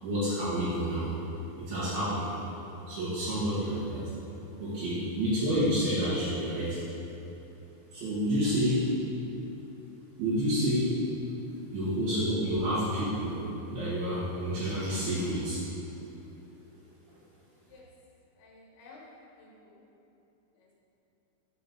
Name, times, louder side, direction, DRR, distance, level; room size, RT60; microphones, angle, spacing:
voice 1, 0.0-1.1 1.5-2.3 2.9-4.0 4.6-6.8 7.9-8.8 10.2-10.9 11.5-13.4 13.7-15.6, equal, 70° right, -12 dB, 3.4 m, -29 dB
voice 2, 18.4-19.8 20.6-20.7, left 2 dB, 80° left, -3 dB, 3.2 m, -53 dB
7.1 x 4.9 x 5.9 m, 3.0 s
omnidirectional pair, 4.5 m